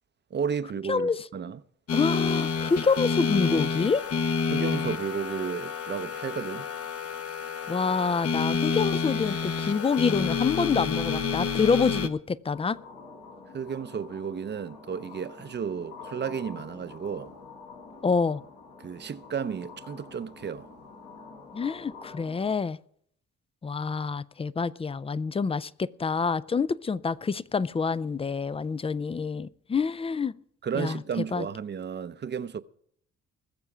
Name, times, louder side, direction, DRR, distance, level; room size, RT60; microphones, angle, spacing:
voice 1, 0.3-1.6 4.5-6.7 13.5-17.3 18.8-20.7 30.6-32.6, right 7 dB, 35° right, 0.7 m, -33 dB
voice 2, 0.9-1.3 1.9-4.0 7.7-12.8 18.0-18.4 21.5-22.8 23.6-30.3 30.7-31.5, left 5 dB, 20° left, 0.4 m, -27 dB
sound 1, 1.9-12.1, left 5 dB, 50° left, 1.1 m, -29 dB
sound 2, 12.5-22.5, left 4 dB, 75° left, 4.3 m, -47 dB
20.5 x 7.0 x 4.9 m
cardioid pair, 90°, 30 cm